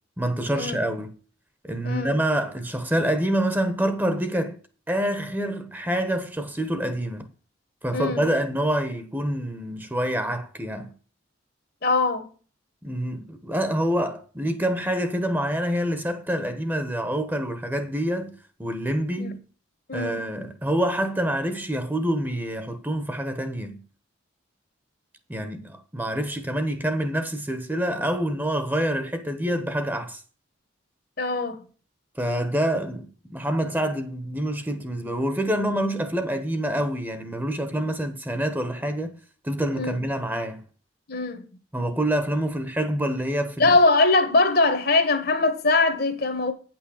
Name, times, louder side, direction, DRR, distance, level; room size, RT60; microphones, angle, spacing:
voice 1, 0.2-1.1 1.6-4.6 4.9-7.3 7.8-10.9 12.8-19.4 19.9-23.8 25.3-30.2 32.2-39.2 39.4-40.6 41.7-43.8, right 1 dB, 10° right, 1.0 m, -26 dB
voice 2, 1.8-2.1 7.9-8.2 11.8-12.3 19.2-19.3 19.9-20.2 31.2-31.6 39.7-40.0 41.1-41.4 43.6-46.5, left 3 dB, 50° left, 1.4 m, -22 dB
9.3 x 6.0 x 6.4 m
head